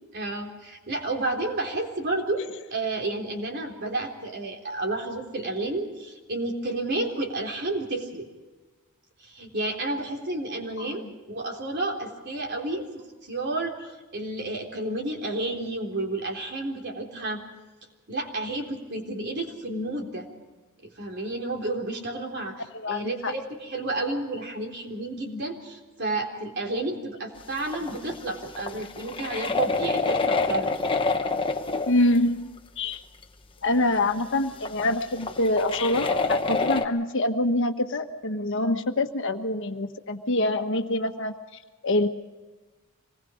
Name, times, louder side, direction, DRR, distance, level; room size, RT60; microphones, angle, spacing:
voice 1, 0.1-2.4 2.7-8.3 9.2-12.9 13.2-17.4 18.1-20.3 20.8-30.8, right 2 dB, 50° right, 2 dB, 3.8 m, -31 dB
voice 2, 22.7-23.3 31.9-32.5 32.8-33.0 33.6-41.3 41.8-42.1, left 2 dB, 60° left, 6 dB, 1.4 m, -25 dB
sound 1, 27.6-32.0 32.9-33.0 33.2-33.3 34.2-34.3 34.6-36.9, left 3 dB, 25° left, 1.1 m, -27 dB
26.0 x 20.0 x 5.1 m, 1.2 s
head